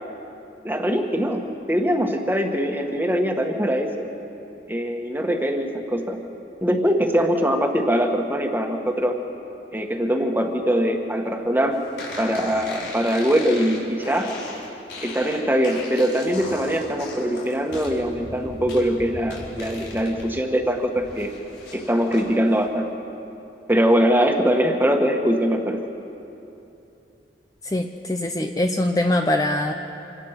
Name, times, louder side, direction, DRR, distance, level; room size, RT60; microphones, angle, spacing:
voice 1, 0.6-4.1 4.7-6.2 6.6-9.2 9.7-11.8 12.2-14.3 15.0-21.3 21.7-22.9 23.7-25.8, equal, 10° right, 3 dB, 1.6 m, -22 dB
sound 1, 12.0-20.3 20.6-22.3, left 2 dB, 85° left, 4.9 m, -37 dB
voice 2, 27.6-29.7, left 1 dB, 20° left, 4 dB, 0.7 m, -23 dB
27.0 x 17.0 x 6.0 m, 2.8 s
head